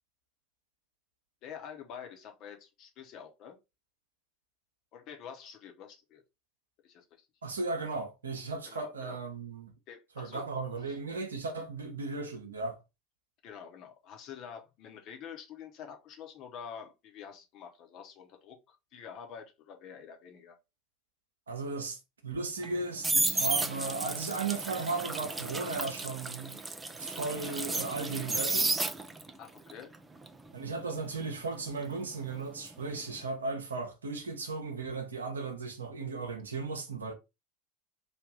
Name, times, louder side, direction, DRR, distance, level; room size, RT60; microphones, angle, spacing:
voice 1, 1.4-3.6 4.9-6.2 6.8-7.3 7.7-7.8 8.7-9.2 9.9-10.5 10.7-11.0 13.4-20.6 29.4-29.9, left 7 dB, 45° left, 0.9 m, -47 dB
voice 2, 7.4-9.7 10.2-12.8 21.5-26.6 27.0-28.8 30.5-37.1, right 3 dB, 80° right, 0.7 m, -36 dB
sound 1, 22.6-29.4 29.7-32.6 32.9-33.2, right 3 dB, 15° right, 0.4 m, -33 dB
3.4 x 2.4 x 3.9 m
figure-of-eight pair, 75°, 0 cm